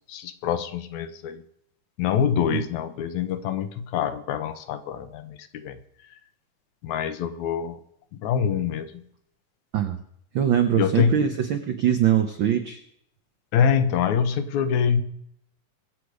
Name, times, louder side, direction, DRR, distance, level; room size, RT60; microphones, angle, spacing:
voice 1, 0.1-1.4 2.0-5.8 6.8-7.8 8.1-9.0 10.8-11.2 13.5-15.0, left 7 dB, 75° left, 11 dB, 2.3 m, -25 dB
voice 2, 10.3-12.8, right 9 dB, 85° right, 7 dB, 1.0 m, -22 dB
23.0 x 8.0 x 4.9 m, 0.72 s
omnidirectional pair, 3.4 m